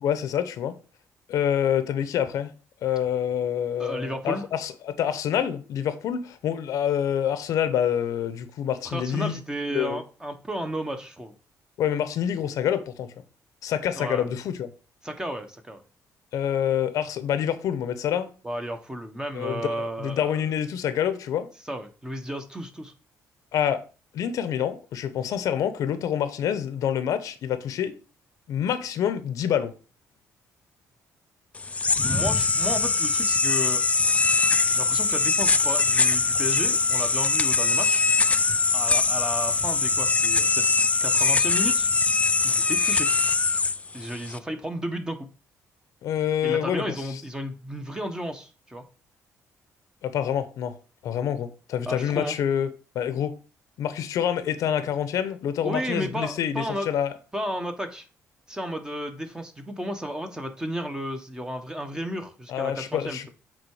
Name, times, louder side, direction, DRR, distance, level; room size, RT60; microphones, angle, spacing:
voice 1, 0.0-0.8 1.3-2.5 2.8-9.4 9.7-10.0 11.8-13.1 13.6-14.7 16.3-18.3 19.3-21.5 23.5-23.8 24.1-28.0 28.5-29.7 46.0-47.2 50.0-50.8 51.0-53.4 53.8-57.1 62.5-63.3, left 9 dB, 75° left, 0.8 m, -27 dB
voice 2, 3.8-4.4 8.8-11.3 14.0-14.3 15.0-15.8 18.4-20.3 21.7-22.9 32.0-33.8 34.7-38.1 38.7-40.6 41.0-41.9 42.4-43.1 43.9-45.3 46.4-48.9 51.9-52.4 55.6-56.9 57.3-58.1 58.5-63.3, equal, 10° right, 1.2 m, -33 dB
sound 1, 31.6-44.4, left 4 dB, 25° left, 0.4 m, -22 dB
7.7 x 3.6 x 4.9 m
cardioid pair, 100°, 6 cm